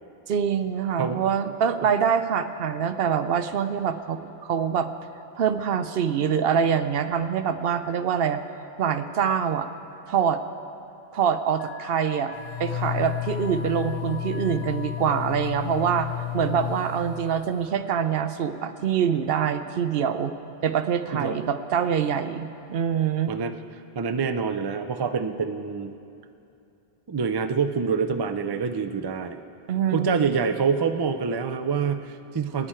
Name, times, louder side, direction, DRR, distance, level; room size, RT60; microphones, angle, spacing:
voice 1, 0.3-4.9 5.4-8.4 8.8-9.7 10.1-10.4 11.1-20.3 20.6-23.3 29.7-30.3, right 7 dB, 65° right, 10 dB, 0.8 m, -25 dB
Alarm, 11.5-15.0, left 4 dB, 65° left, 1.3 m, -42 dB
sound 1, 12.3-17.7, left 14 dB, 85° left, 1.1 m, -32 dB
voice 2, 23.9-25.9 27.1-29.4 29.9-32.7, right 5 dB, 35° right, 8 dB, 0.4 m, -26 dB
21.0 x 10.0 x 4.4 m, 2.6 s
omnidirectional pair, 1.1 m